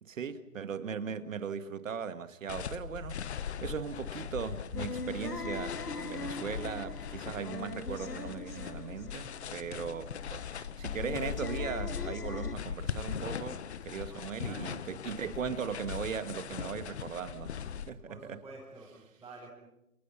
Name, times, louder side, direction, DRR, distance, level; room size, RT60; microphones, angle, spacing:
voice 1, 0.0-17.6 17.9-18.4, right 7 dB, 55° right, 2.2 m, -38 dB
sound 1, 2.5-17.9, left 8 dB, 45° left, 1.3 m, -40 dB
sound 2, 4.7-12.5, left 3 dB, 85° left, 1.7 m, -42 dB
voice 2, 13.9-14.8 18.1-19.5, right 3 dB, 5° right, 6.0 m, -50 dB
29.5 x 29.5 x 5.8 m
figure-of-eight pair, 140°, 46 cm